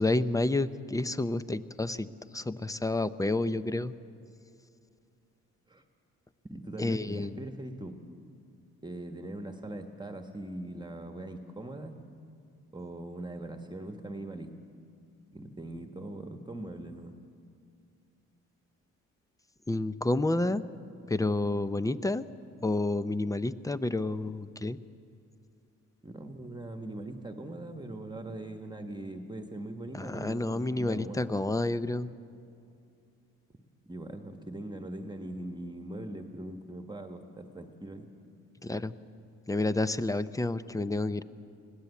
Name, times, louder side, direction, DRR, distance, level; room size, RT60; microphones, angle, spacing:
voice 1, 0.0-2.1 2.3-3.9 6.8-7.3 19.7-20.7 21.1-22.2 22.6-24.8 29.9-32.1 38.6-38.9 39.5-41.2, left 2 dB, 10° left, 14 dB, 0.6 m, -29 dB
voice 2, 6.4-8.0 8.8-12.0 12.7-14.5 15.3-17.1 26.0-31.3 33.9-38.1, right 1 dB, 15° right, 5 dB, 1.3 m, -41 dB
21.0 x 16.5 x 8.3 m, 2.4 s
cardioid pair, 90°, 30 cm